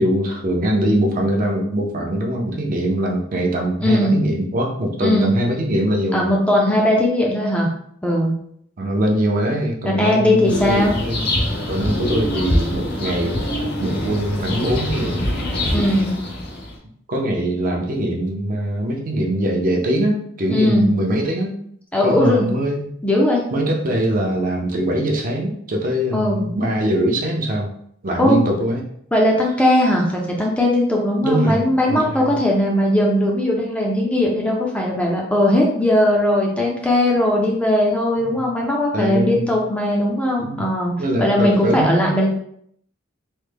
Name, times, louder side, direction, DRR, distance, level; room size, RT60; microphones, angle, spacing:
voice 1, 0.0-6.3 8.8-11.2 11.7-13.5 13.8-15.4 17.1-21.6 22.0-22.9 23.5-27.7 28.0-28.8 31.2-31.6 31.9-32.4 38.2-38.4 38.9-39.5 40.4-40.6 41.0-42.1, right 1 dB, 45° right, 0 dB, 0.5 m, -22 dB
voice 2, 3.8-4.2 5.0-5.3 6.1-7.7 8.0-8.3 9.9-11.0 15.7-16.2 20.5-20.9 21.9-22.5 23.0-23.4 26.1-26.5 28.2-28.4 29.1-42.3, left 1 dB, 5° left, -2 dB, 0.4 m, -18 dB
sound 1, 10.5-16.8, left 1 dB, 50° left, 0.7 m, -24 dB
3.2 x 2.1 x 3.3 m, 0.68 s
head